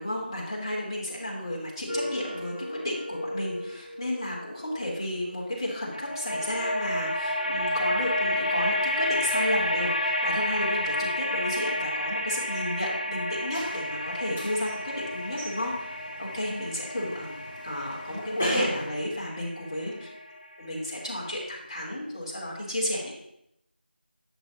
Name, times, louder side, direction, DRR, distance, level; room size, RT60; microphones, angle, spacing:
voice 1, 0.0-17.4 17.6-20.1 20.6-23.1, left 1 dB, 25° left, -4 dB, 1.6 m, -32 dB
sound 1, 1.9-5.2 5.9-20.8, left 1 dB, 45° left, 1.4 m, -31 dB
sound 2, 13.5-18.9, equal, 5° left, 0.5 m, -35 dB
11.0 x 7.0 x 2.9 m, 0.79 s
figure-of-eight pair, 170°, 6 cm